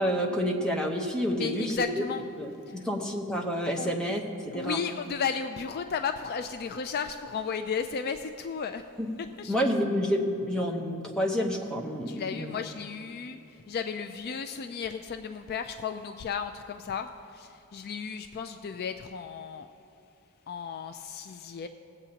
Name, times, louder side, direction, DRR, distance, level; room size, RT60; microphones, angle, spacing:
voice 1, 0.0-1.8 2.4-4.8 9.0-9.1 9.5-12.5, equal, 5° left, -1 dB, 0.9 m, -29 dB
voice 2, 1.4-2.3 2.7-2.9 3.8-3.9 4.5-8.8 9.2-9.5 12.1-19.7 20.5-21.7, left 6 dB, 45° left, 7 dB, 0.4 m, -34 dB
18.5 x 8.0 x 2.9 m, 2.8 s
head